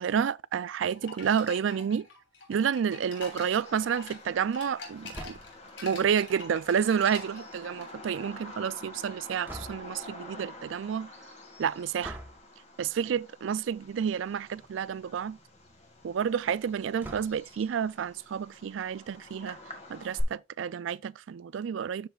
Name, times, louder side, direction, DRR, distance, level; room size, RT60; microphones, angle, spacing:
voice 1, 0.0-2.1 2.5-5.4 5.8-11.1 11.6-12.2 12.8-15.4 16.0-19.6 19.9-22.1, right 7 dB, 80° right, 0.3 m, -30 dB
sound 1, 0.8-7.9, left 4 dB, 70° left, 3.2 m, -46 dB
Bird vocalization bird call bird song, 3.2-20.2, left 1 dB, 35° left, 1.8 m, -47 dB
sound 2, 5.1-5.7 9.5-10.1 12.0-12.5 13.7-13.9 14.3-14.4 14.7-14.8 17.0-17.6, right 1 dB, 10° right, 1.1 m, -43 dB
13.0 x 4.8 x 2.4 m
head